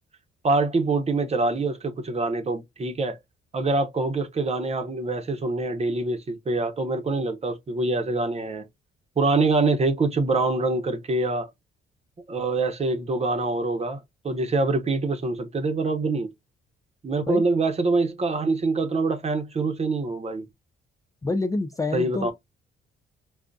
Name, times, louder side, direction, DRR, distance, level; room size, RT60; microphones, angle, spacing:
voice 1, 0.4-3.2 3.5-8.7 9.2-11.5 12.3-16.3 17.0-20.4 21.9-22.3, right 3 dB, 30° right, 0.9 m, -25 dB
voice 2, 21.2-22.3, left 3 dB, 15° left, 0.4 m, -27 dB
3.8 x 2.4 x 2.3 m
cardioid pair, 90°, 20 cm